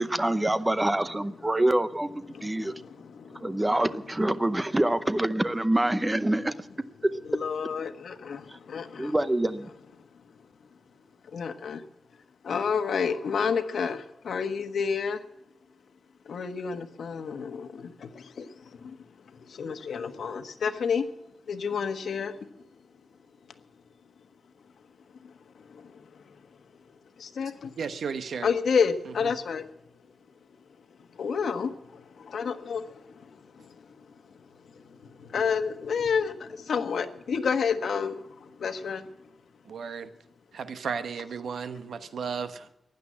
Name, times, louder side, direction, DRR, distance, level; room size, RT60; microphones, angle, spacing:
voice 1, 0.0-2.7 3.4-6.5 7.0-7.2 9.0-9.7, right 1 dB, 10° right, 0.7 m, -26 dB
voice 2, 2.3-3.8 7.3-9.1 10.0-10.5 11.2-11.9 12.4-15.2 16.2-21.1 21.5-22.6 23.5-23.6 25.2-26.5 26.8-27.5 28.4-29.7 30.5-39.2, left 6 dB, 80° left, 1.3 m, -31 dB
voice 3, 27.8-28.5 29.2-29.3 39.6-40.1 40.5-42.8, right 6 dB, 85° right, 1.1 m, -34 dB
15.5 x 11.0 x 8.6 m
wide cardioid pair, 180°, 0 cm